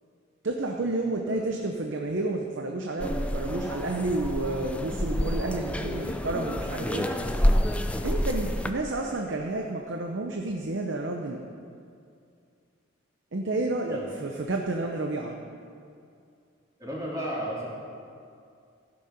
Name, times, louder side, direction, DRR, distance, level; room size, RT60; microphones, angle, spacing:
voice 1, 0.4-7.1 8.0-11.4 13.3-15.4, right 2 dB, 65° right, 2 dB, 0.8 m, -30 dB
sound 1, 3.0-8.7, equal, 5° left, 0.5 m, -28 dB
voice 2, 13.9-14.3 16.8-17.7, equal, 20° right, -6 dB, 2.9 m, -34 dB
15.5 x 6.9 x 5.2 m, 2.4 s
head